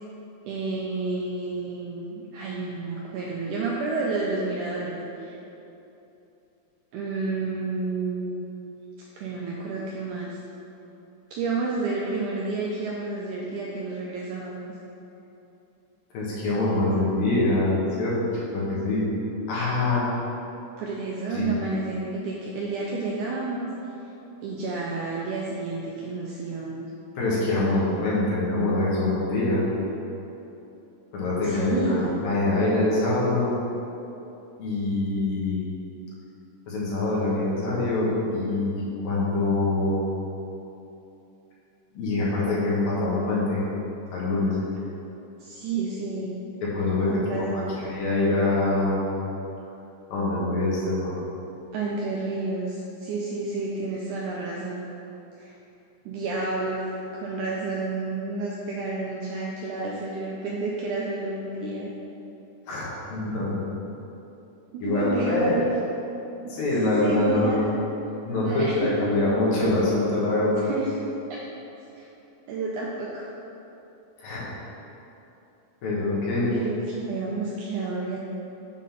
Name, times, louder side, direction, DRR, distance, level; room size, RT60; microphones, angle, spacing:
voice 1, 0.4-5.4 6.9-8.5 9.1-10.4 11.3-14.7 20.8-23.7 24.4-26.8 31.4-32.1 45.4-46.3 47.1-47.8 51.7-54.9 55.4-55.5 56.0-56.8 57.1-61.9 64.7-65.7 66.8-67.8 68.3-69.1 70.6-70.9 71.3-71.4 72.0-72.1 72.5-73.3 76.5-78.2, right 3 dB, 85° right, -4 dB, 1.8 m, -30 dB
voice 2, 16.1-19.1 19.5-20.1 21.3-21.5 27.2-29.7 31.1-32.0 32.2-33.6 34.6-35.7 36.7-40.0 41.9-43.6 44.1-44.6 46.6-49.0 50.1-51.1 62.7-63.6 64.8-65.6 66.5-67.7 68.2-70.7 74.2-74.5 75.8-76.6, left 2 dB, 75° left, -7 dB, 3.2 m, -24 dB
7.3 x 3.9 x 5.8 m, 2.9 s
omnidirectional pair, 4.1 m